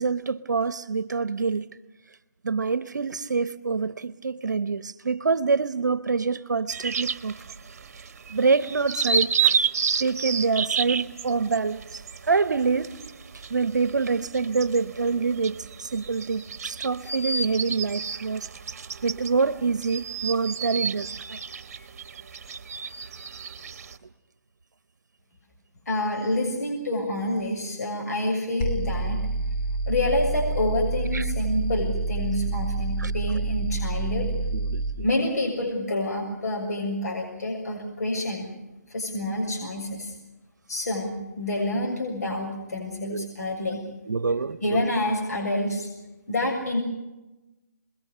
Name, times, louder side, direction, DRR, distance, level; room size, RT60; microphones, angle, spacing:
voice 1, 0.0-1.7 2.4-7.4 8.3-9.6 10.0-12.0 12.3-12.9 13.5-18.5 19.0-21.4 31.1-31.3 33.0-33.1 34.5-35.1 43.1-43.3 44.1-44.8, right 4 dB, 80° right, 0.9 m, -26 dB
sound 1, 6.7-24.0, right 6 dB, 55° right, 1.3 m, -31 dB
voice 2, 25.9-29.2 29.9-34.3 35.0-38.5 38.9-40.1 40.7-43.8 44.6-45.9 46.3-46.8, left 1 dB, 65° left, 6.7 m, -28 dB
sound 2, 28.6-35.0, right 2 dB, 30° left, 2.5 m, -28 dB
27.5 x 21.5 x 6.8 m
hypercardioid pair, 155°, 10 cm